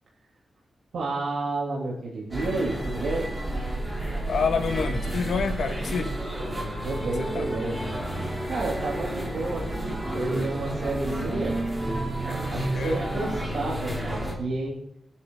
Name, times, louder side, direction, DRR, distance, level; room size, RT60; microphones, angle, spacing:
voice 1, 0.9-3.3 6.8-7.8 8.5-11.6 12.5-14.7, right 2 dB, 90° right, -4 dB, 3.3 m, -31 dB
sound 1, 2.3-14.4, right 1 dB, 15° right, 3.3 m, -30 dB
voice 2, 4.3-6.1 7.0-7.5 12.7-13.0, left 5 dB, 80° left, 5 dB, 1.9 m, -28 dB
26.0 x 9.6 x 4.0 m, 0.76 s
wide cardioid pair, 170°, 0 cm